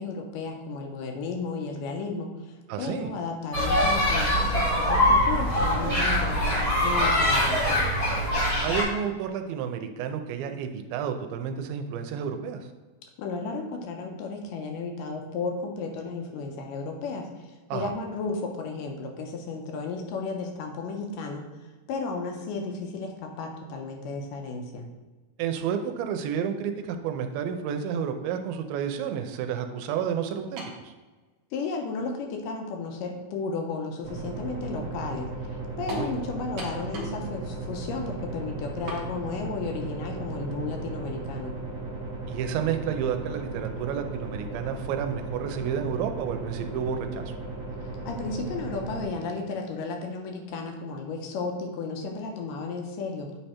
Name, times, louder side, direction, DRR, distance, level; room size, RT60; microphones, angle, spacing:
voice 1, 0.0-7.9 13.2-21.5 21.9-24.9 31.5-41.6 47.8-53.4, left 4 dB, 75° left, 3 dB, 2.2 m, -34 dB
voice 2, 2.7-3.1 8.6-12.6 17.7-17.9 25.4-30.6 35.8-36.1 42.3-47.3, right 8 dB, 90° right, 6 dB, 2.4 m, -30 dB
sound 1, 3.5-8.8, left 1 dB, 25° left, 1.3 m, -23 dB
sound 2, 30.6-30.8 31.7-31.8 35.9-36.1 36.6-37.2 37.5-37.6 38.9-39.1, right 1 dB, 60° right, 1.3 m, -37 dB
sound 3, 34.0-49.1, right 3 dB, 45° right, 1.9 m, -36 dB
8.9 x 3.3 x 4.3 m, 1.3 s
omnidirectional pair, 4.2 m